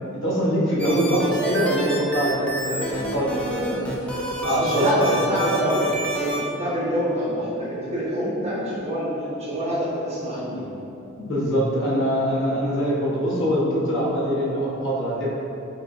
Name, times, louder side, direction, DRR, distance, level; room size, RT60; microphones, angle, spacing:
voice 1, 0.1-3.8 4.4-5.2 11.2-15.3, equal, 60° left, -7 dB, 0.9 m, -23 dB
sound 1, 0.8-6.4, right 1 dB, 5° left, 0.5 m, -29 dB
voice 2, 4.4-10.7 12.5-12.6, equal, 30° right, -10 dB, 1.2 m, -26 dB
4.3 x 3.6 x 2.5 m, 2.8 s
head